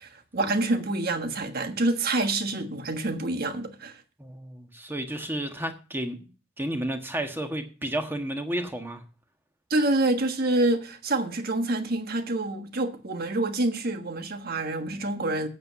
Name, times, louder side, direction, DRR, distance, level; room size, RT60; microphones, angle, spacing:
voice 1, 0.0-4.0 9.7-15.5, right 2 dB, 50° right, 1.4 m, -27 dB
voice 2, 4.2-6.2 6.6-9.0, right 1 dB, 10° right, 1.4 m, -32 dB
8.9 x 7.8 x 6.9 m
head